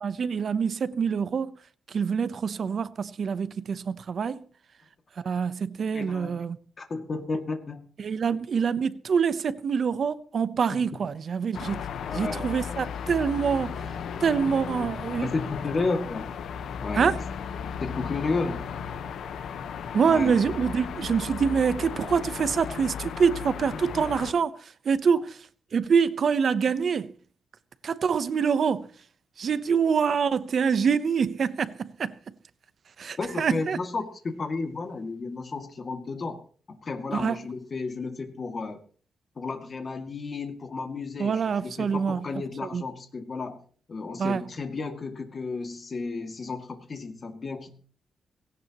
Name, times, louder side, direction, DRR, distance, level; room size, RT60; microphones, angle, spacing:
voice 1, 0.0-1.5 1.9-4.4 5.2-6.6 8.0-11.9 12.1-13.8 14.2-15.3 16.9-17.2 19.9-24.6 24.8-25.4 25.7-27.1 27.8-28.9 29.4-32.2 33.0-33.8 37.1-37.4 41.2-42.2 42.7-42.8 44.2-44.4, right 6 dB, 50° right, 0.8 m, -25 dB
voice 2, 5.9-6.3 6.8-7.8 10.7-11.0 12.0-12.6 15.2-16.3 16.8-17.1 17.8-18.7 20.1-20.4 24.0-24.1 33.2-36.4 36.7-38.8 39.4-43.6 43.9-47.7, left 3 dB, 35° left, 2.2 m, -33 dB
sound 1, 11.5-24.3, left 7 dB, 90° left, 1.1 m, -35 dB
18.5 x 17.5 x 3.0 m
wide cardioid pair, 155°, 0 cm